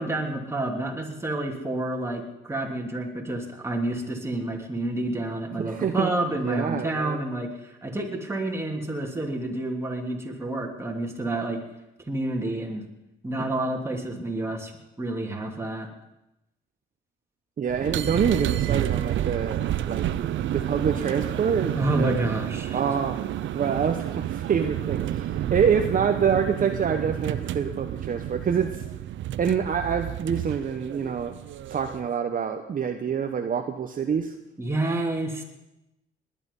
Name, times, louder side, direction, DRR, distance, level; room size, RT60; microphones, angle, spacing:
voice 1, 0.0-11.6 12.1-12.8 13.2-14.7 15.0-15.9 21.7-22.8 34.6-35.4, right 2 dB, 15° right, 0 dB, 3.0 m, -29 dB
voice 2, 5.6-7.2 17.6-20.2 20.5-22.3 22.7-23.2 23.5-28.9 29.4-31.3 31.7-34.3, right 7 dB, 45° right, 5 dB, 1.0 m, -26 dB
sound 1, 17.7-32.1, right 12 dB, 75° right, 0.7 m, -30 dB
20.0 x 10.5 x 5.5 m, 0.92 s
cardioid pair, 90°, 20 cm